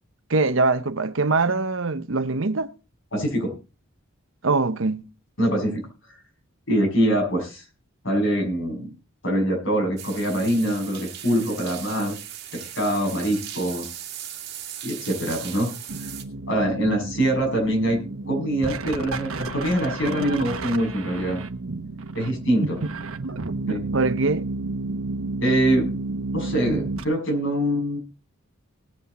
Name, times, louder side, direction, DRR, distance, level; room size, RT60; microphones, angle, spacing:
voice 1, 0.3-2.7 4.4-5.0 22.6-22.7 23.7-24.4, right 3 dB, 70° right, 0.9 m, -23 dB
voice 2, 3.1-3.6 5.4-5.9 6.7-7.6 8.0-8.9 9.2-12.2 12.5-13.9 14.8-15.7 16.0-16.1 16.5-18.0 18.3-21.4 22.1-22.8 23.7-23.8 25.4-25.9 26.3-28.0, right 1 dB, 65° left, 6.8 m, -24 dB
sound 1, 10.0-16.2, right 10 dB, 50° right, 2.1 m, -38 dB
sound 2, 15.9-27.0, right 3 dB, 85° right, 1.2 m, -31 dB
19.5 x 8.2 x 4.1 m
head